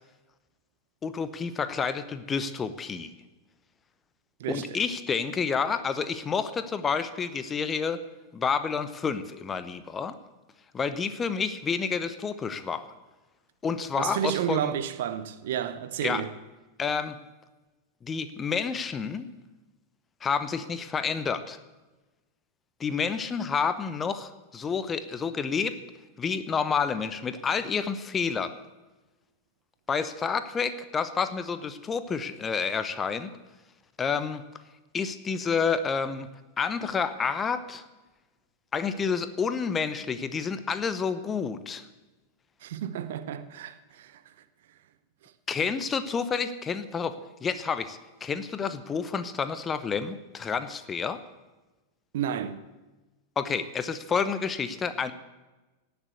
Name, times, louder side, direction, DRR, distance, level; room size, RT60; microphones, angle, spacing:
voice 1, 1.0-3.1 4.5-8.0 8.3-10.2 10.7-12.9 13.6-14.7 16.0-16.2 16.8-17.2 18.0-19.3 20.2-21.6 22.8-25.8 26.2-28.5 29.9-33.3 34.0-34.4 34.9-36.3 36.6-37.8 38.7-41.8 45.5-51.2 53.4-55.1, left 6 dB, 20° left, 0.9 m, -29 dB
voice 2, 4.4-4.8 14.0-16.3 42.6-44.2 52.1-52.6, right 10 dB, 55° right, 0.9 m, -31 dB
17.5 x 7.0 x 8.0 m
figure-of-eight pair, 90°, 0 cm